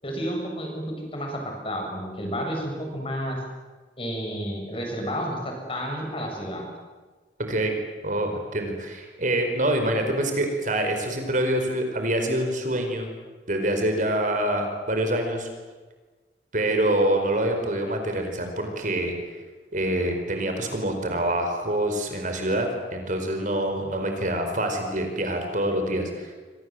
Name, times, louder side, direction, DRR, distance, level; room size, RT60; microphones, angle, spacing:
voice 1, 0.0-3.4 4.0-6.6, equal, 30° left, 1 dB, 7.7 m, -31 dB
voice 2, 8.0-13.1 13.5-15.5 16.5-19.1 19.7-26.3, right 1 dB, 45° right, 5 dB, 4.8 m, -26 dB
29.5 x 24.5 x 7.9 m, 1.3 s
head